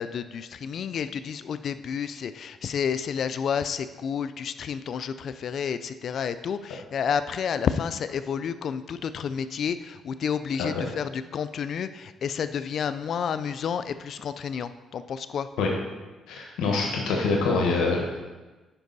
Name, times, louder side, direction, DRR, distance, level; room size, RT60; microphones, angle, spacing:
voice 1, 0.0-15.5, left 7 dB, 60° left, 12 dB, 0.3 m, -30 dB
voice 2, 16.3-18.2, left 4 dB, 90° left, 0 dB, 1.2 m, -25 dB
9.9 x 5.3 x 4.0 m, 1.2 s
cardioid pair, 90°, 0 cm